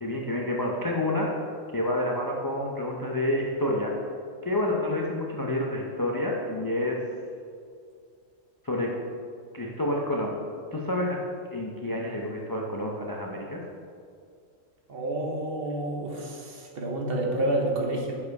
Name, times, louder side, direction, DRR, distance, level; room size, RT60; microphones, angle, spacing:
voice 1, 0.0-1.3 1.7-3.9 4.4-7.0 8.6-8.9 9.5-10.3 10.7-11.2 11.5-13.6, left 1 dB, 25° left, -2 dB, 0.4 m, -28 dB
voice 2, 14.9-18.2, right 1 dB, 50° right, 0 dB, 1.1 m, -29 dB
7.3 x 4.8 x 4.7 m, 2.2 s
omnidirectional pair, 1.4 m